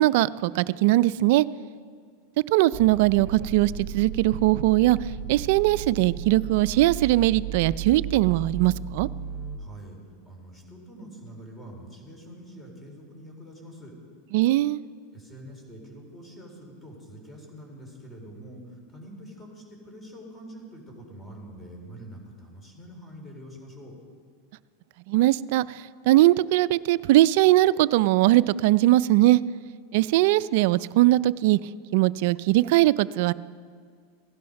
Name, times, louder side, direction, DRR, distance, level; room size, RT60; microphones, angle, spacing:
voice 1, 0.0-1.4 2.5-5.0 5.3-9.1 14.3-14.8 25.1-25.6 26.1-29.4 29.9-31.6 31.9-33.3, right 16 dB, 65° right, 18 dB, 0.4 m, -20 dB
sound 1, 2.7-9.6, right 7 dB, 35° right, 1.2 m, -35 dB
voice 2, 9.6-13.9 15.1-23.9, equal, 15° left, 0 dB, 4.2 m, -45 dB
16.5 x 11.5 x 5.3 m, 2.1 s
hypercardioid pair, 120°, 0 cm